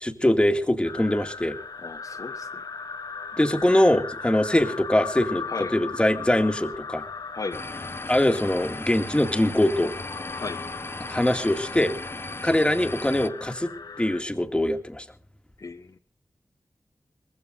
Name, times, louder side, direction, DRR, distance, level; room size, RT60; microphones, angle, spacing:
voice 1, 0.0-1.6 3.4-5.4 5.7-7.0 8.1-9.9 11.1-11.9 12.4-13.7 14.0-15.0, left 1 dB, 15° left, 6 dB, 2.2 m, -22 dB
sound 1, 0.8-14.2, left 5 dB, 80° left, 1.6 m, -38 dB
voice 2, 1.8-2.6 5.5-5.8 7.3-7.6 10.4-10.6 15.6-16.0, left 3 dB, 60° left, 6 dB, 1.2 m, -35 dB
sound 2, 7.5-13.3, left 2 dB, 35° left, 1.1 m, -37 dB
20.5 x 16.0 x 3.9 m, 0.37 s
cardioid pair, 45°, 7 cm